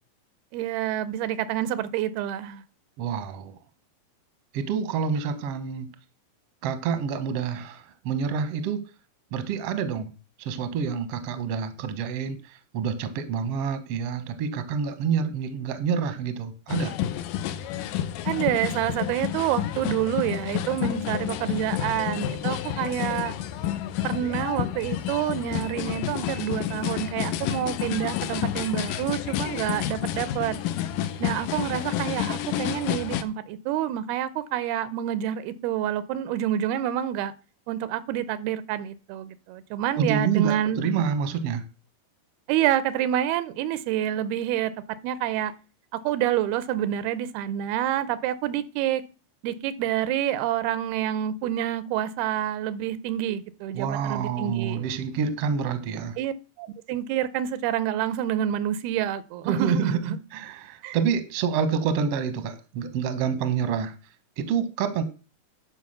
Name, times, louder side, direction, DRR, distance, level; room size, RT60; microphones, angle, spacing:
voice 1, 0.5-2.6 18.3-23.4 24.0-30.6 31.2-37.3 37.7-40.8 42.5-44.7 45.0-45.5 46.0-49.0 49.4-54.9 56.2-60.2 60.8-61.0, right 11 dB, 85° right, 2.7 m, -28 dB
voice 2, 3.0-3.5 4.5-5.9 6.6-8.8 9.3-10.1 10.4-16.9 40.0-41.6 53.7-56.2 59.4-60.0 60.3-63.9 64.4-65.0, right 6 dB, 65° right, 1.5 m, -27 dB
sound 1, 16.7-33.2, left 11 dB, 80° left, 2.1 m, -30 dB
11.5 x 4.9 x 6.5 m
omnidirectional pair, 4.5 m